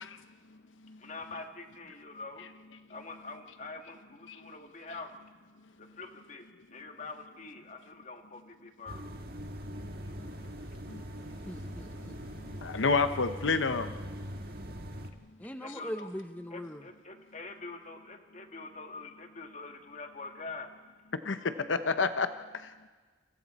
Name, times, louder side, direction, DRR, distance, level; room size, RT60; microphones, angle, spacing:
voice 1, 1.0-2.5 2.9-5.1 5.8-6.5 6.7-9.0 15.6-16.1 16.5-20.7, left 3 dB, 40° left, 5 dB, 1.6 m, -45 dB
sound 1, 8.9-15.1, equal, 55° right, 1.6 m, -42 dB
voice 2, 11.5-12.2 15.4-16.8, equal, 10° left, 7 dB, 0.7 m, -40 dB
voice 3, 12.3-14.0 21.2-22.7, left 4 dB, 85° left, 10 dB, 0.9 m, -30 dB
28.5 x 26.5 x 4.2 m, 1.4 s
head